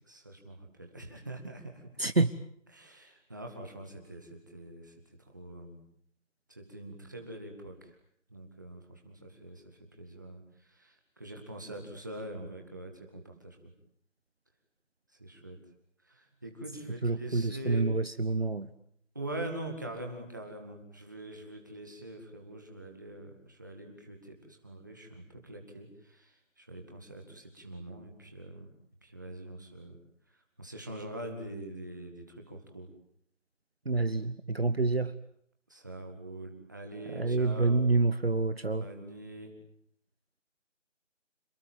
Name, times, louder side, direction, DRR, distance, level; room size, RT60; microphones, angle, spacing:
voice 1, 0.1-1.9 2.7-5.8 6.5-8.0 8.3-13.6 15.2-15.6 16.0-17.9 19.1-28.7 29.0-30.0 30.6-32.9 35.7-37.8 38.8-39.5, right 1 dB, 15° right, 3 dB, 2.1 m, -44 dB
voice 2, 2.0-2.3 17.0-18.7 33.8-35.1 37.1-38.9, right 3 dB, 50° right, 13 dB, 1.1 m, -27 dB
27.5 x 21.0 x 8.8 m, 0.66 s
figure-of-eight pair, 180°, 38 cm